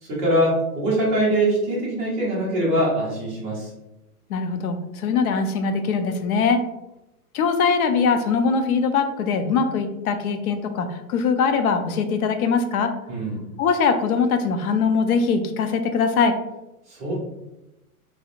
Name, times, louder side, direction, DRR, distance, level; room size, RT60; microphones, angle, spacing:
voice 1, 0.0-3.7 13.1-13.4 16.9-17.1, right 1 dB, 15° right, -7 dB, 0.4 m, -23 dB
voice 2, 4.3-6.6 7.3-12.9 13.6-16.3, left 5 dB, 70° left, 7 dB, 0.5 m, -22 dB
2.7 x 2.0 x 2.4 m, 0.93 s
hypercardioid pair, 145°, 45 cm